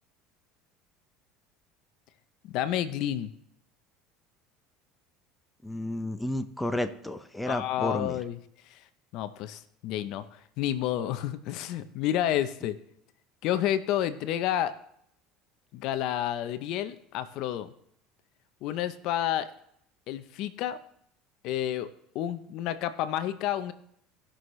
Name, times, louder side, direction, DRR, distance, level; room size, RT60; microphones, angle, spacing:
voice 1, 2.4-3.3 7.5-8.4 8.7-8.8 9.1-12.8 13.4-14.7 15.7-17.7 18.6-19.5 20.1-20.8 21.4-21.9 22.1-23.7, left 11 dB, 65° left, 12 dB, 0.7 m, -30 dB
voice 2, 5.6-8.2, left 1 dB, 5° left, 9 dB, 0.7 m, -32 dB
18.5 x 6.3 x 3.2 m, 0.70 s
supercardioid pair, 110°, 0 cm